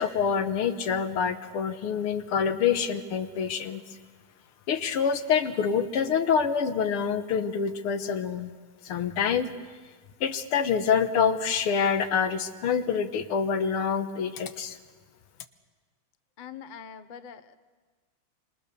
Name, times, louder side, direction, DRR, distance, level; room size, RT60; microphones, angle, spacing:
voice 1, 0.0-3.8 4.7-8.5 8.8-9.5 10.2-14.8, left 6 dB, 80° left, 10 dB, 2.1 m, -26 dB
voice 2, 16.4-17.6, left 7 dB, 60° left, 12 dB, 0.5 m, -43 dB
27.0 x 25.5 x 6.8 m, 1.5 s
omnidirectional pair, 2.4 m